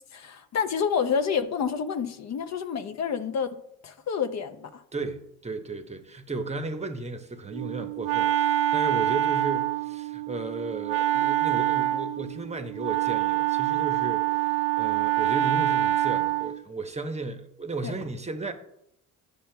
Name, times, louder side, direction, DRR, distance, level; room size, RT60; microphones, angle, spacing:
voice 1, 0.1-3.5 3.8-4.8 17.8-17.9, left 6 dB, 50° left, 0.6 m, -28 dB
voice 2, 4.9-18.5, right 3 dB, 20° right, 0.8 m, -34 dB
Wind instrument woodwind instrument, 7.5-16.6, right 14 dB, 60° right, 0.5 m, -26 dB
9.9 x 6.7 x 2.2 m
supercardioid pair, 75°, 35 cm